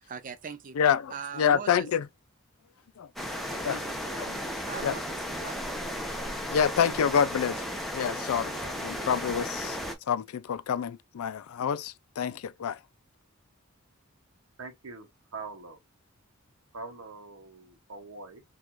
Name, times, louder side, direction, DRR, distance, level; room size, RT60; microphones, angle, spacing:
voice 1, 0.0-0.8 1.1-1.9 3.3-6.4, right 5 dB, 40° right, 0.5 m, -42 dB
voice 2, 0.8-2.0 3.0-3.1 3.6-3.8 4.3-4.4 4.8-4.9 6.5-7.6 7.9-9.8 10.1-12.8, left 7 dB, 90° left, 0.4 m, -27 dB
sound 1, 3.2-10.0, equal, ahead, 0.7 m, -35 dB
voice 3, 6.8-7.2 14.6-15.8 16.7-18.4, right 3 dB, 80° right, 0.8 m, -43 dB
4.4 x 2.4 x 2.4 m
head